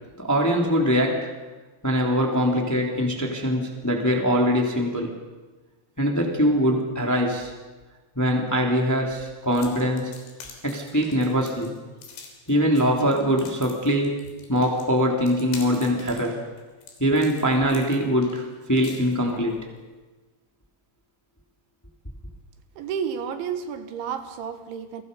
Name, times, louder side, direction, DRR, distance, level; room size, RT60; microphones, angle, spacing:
voice 1, 0.2-1.3 1.8-5.1 6.0-7.5 8.1-10.1 10.6-11.8 12.5-14.2 14.5-16.4 17.0-19.7, equal, 5° left, 0 dB, 2.2 m, -22 dB
sound 1, 9.5-19.6, left 5 dB, 75° left, 5.8 m, -45 dB
voice 2, 22.8-25.0, right 7 dB, 75° right, 8 dB, 3.7 m, -31 dB
29.5 x 23.5 x 5.5 m, 1.2 s
omnidirectional pair, 5.5 m